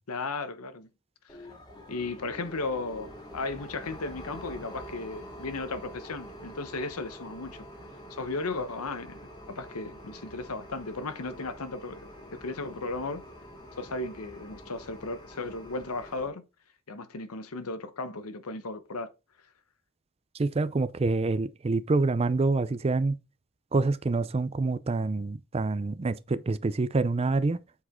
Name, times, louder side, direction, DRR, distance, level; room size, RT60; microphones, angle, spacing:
voice 1, 0.1-0.9 1.9-7.7 8.1-9.2 9.5-12.0 12.3-13.2 13.8-16.4 16.9-19.1, left 3 dB, 90° left, 0.9 m, -35 dB
sound 1, 1.3-16.3, equal, 20° left, 2.0 m, -46 dB
voice 2, 20.4-23.2 23.7-27.6, right 3 dB, 30° right, 0.4 m, -26 dB
8.4 x 4.9 x 3.7 m
head